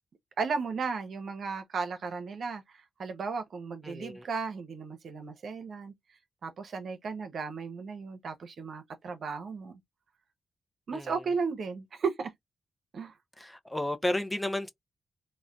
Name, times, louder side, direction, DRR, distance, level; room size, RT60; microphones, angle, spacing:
voice 1, 0.4-2.6 3.0-5.9 6.4-9.8 10.9-12.3 12.9-13.1, right 5 dB, 70° right, 0.7 m, -35 dB
voice 2, 3.8-4.3 10.9-11.1 13.4-14.7, left 1 dB, 10° left, 0.5 m, -32 dB
3.1 x 2.1 x 2.5 m
cardioid pair, 55°, 0 cm